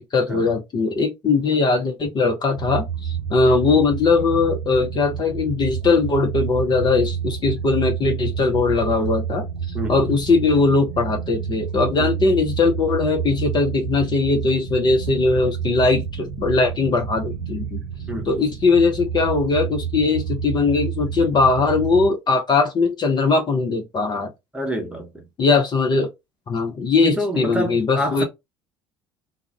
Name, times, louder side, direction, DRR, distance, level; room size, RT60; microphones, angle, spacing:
voice 1, 0.0-9.5 9.9-17.8 18.3-24.3 25.4-26.1 26.5-28.2, left 4 dB, 30° left, 0.6 m, -20 dB
sound 1, 2.6-22.1, right 7 dB, 55° right, 0.8 m, -29 dB
voice 2, 24.5-25.2 27.0-28.2, equal, 10° right, 0.9 m, -27 dB
2.4 x 2.0 x 3.2 m
figure-of-eight pair, 60°, 14 cm